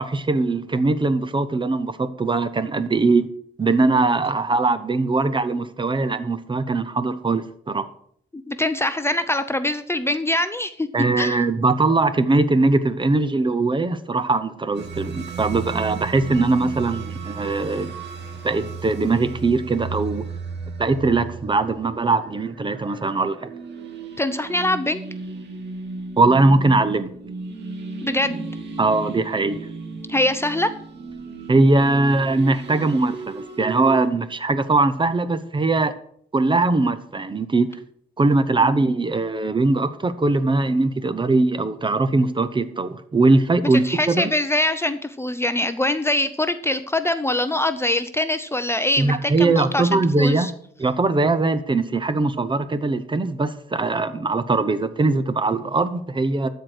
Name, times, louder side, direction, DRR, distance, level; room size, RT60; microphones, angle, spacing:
voice 1, 0.0-3.3 3.6-7.9 10.9-17.9 18.4-20.3 20.8-23.5 26.2-27.1 28.8-29.6 31.5-35.9 36.3-37.8 38.2-44.3 49.0-50.5 50.8-56.5, right 3 dB, 25° right, 12 dB, 0.7 m, -21 dB
voice 2, 8.3-10.9 11.2-11.4 24.2-25.0 28.0-28.4 30.1-30.7 38.6-38.7 43.7-50.5, left 1 dB, 10° left, 10 dB, 0.6 m, -23 dB
sound 1, 14.7-34.1, right 4 dB, 60° right, 1.9 m, -35 dB
12.5 x 4.5 x 6.5 m, 0.65 s
cardioid pair, 90°, 20 cm